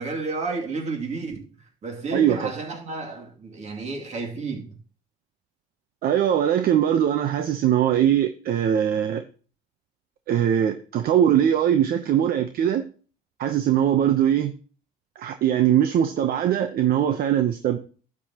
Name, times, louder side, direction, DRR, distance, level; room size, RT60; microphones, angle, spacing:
voice 1, 0.0-1.5 1.8-4.7, right 3 dB, 40° right, 2.6 m, -31 dB
voice 2, 2.1-2.5 6.0-9.2 10.3-12.9 13.4-14.5 15.2-17.8, right 10 dB, 60° right, 0.8 m, -21 dB
12.0 x 8.4 x 2.9 m
cardioid pair, 110°, 17 cm